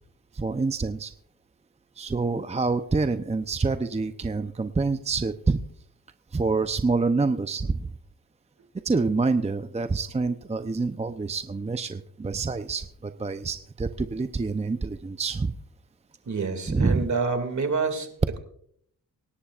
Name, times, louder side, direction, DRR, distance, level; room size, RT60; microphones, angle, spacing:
voice 1, 0.3-1.1 2.0-5.6 6.3-7.9 8.8-15.5 16.7-17.1, right 4 dB, 20° right, 9 dB, 0.7 m, -27 dB
voice 2, 16.3-18.1, right 4 dB, 50° right, 8 dB, 2.4 m, -27 dB
24.5 x 11.5 x 2.5 m, 0.69 s
cardioid pair, 60°, 35 cm